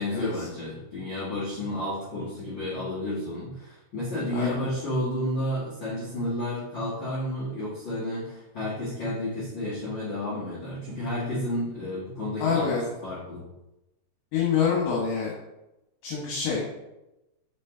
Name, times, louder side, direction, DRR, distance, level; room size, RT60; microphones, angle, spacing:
voice 1, 0.0-12.7 13.0-13.5, left 1 dB, 55° left, -10 dB, 1.3 m, -31 dB
voice 2, 12.4-12.9 14.3-15.3 16.0-16.6, left 6 dB, 70° left, -4 dB, 3.1 m, -26 dB
6.6 x 5.0 x 3.9 m, 0.95 s
omnidirectional pair, 5.2 m